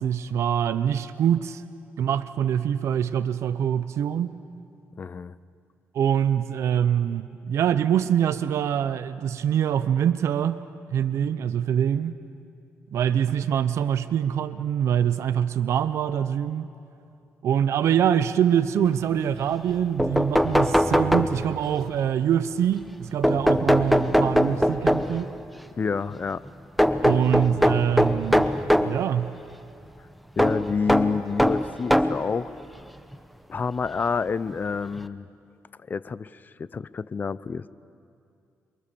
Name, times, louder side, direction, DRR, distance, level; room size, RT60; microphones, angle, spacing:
voice 1, 0.0-1.6 2.0-4.3 5.9-10.6 10.9-12.2 12.9-16.7 17.4-25.3 27.0-28.5 28.8-29.3, right 9 dB, 75° right, 12 dB, 0.7 m, -24 dB
voice 2, 5.0-5.3 25.8-26.4 30.4-32.5 33.5-35.3 35.9-36.3 36.6-37.7, left 5 dB, 40° left, 17 dB, 0.6 m, -28 dB
sound 1, 19.7-19.8 20.0-21.7 23.2-25.3 26.8-29.0 30.4-32.3 33.1-33.2 34.5-34.6 35.0-35.1, equal, ahead, 0.9 m, -21 dB
28.5 x 23.0 x 6.9 m, 2.5 s
cardioid pair, 80°, 5 cm